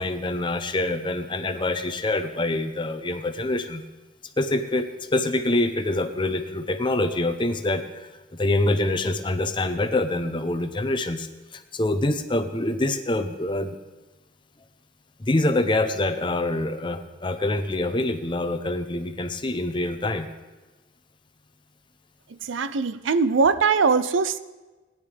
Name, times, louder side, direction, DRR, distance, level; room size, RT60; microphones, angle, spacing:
voice 1, 0.0-3.8 4.4-11.3 11.5-13.8 15.3-20.3, left 2 dB, 25° left, 9 dB, 0.7 m, -25 dB
voice 2, 22.4-24.4, right 5 dB, 85° right, 13 dB, 0.5 m, -21 dB
18.5 x 10.5 x 3.4 m, 1.2 s
head